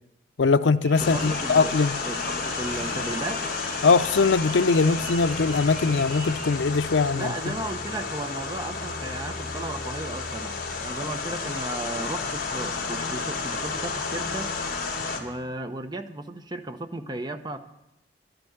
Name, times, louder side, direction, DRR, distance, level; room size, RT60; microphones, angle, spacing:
voice 1, 0.4-2.0 3.8-7.5, left 4 dB, 90° left, 14 dB, 0.5 m, -21 dB
sound 1, 0.8-6.6, right 3 dB, 40° right, 1.2 m, -42 dB
sound 2, 1.0-15.2, left 4 dB, 50° left, 2.9 m, -31 dB
voice 2, 1.0-1.8 2.0-3.5 7.1-14.5 15.1-17.7, right 2 dB, 25° right, 8 dB, 0.7 m, -35 dB
12.0 x 7.9 x 9.9 m, 0.90 s
head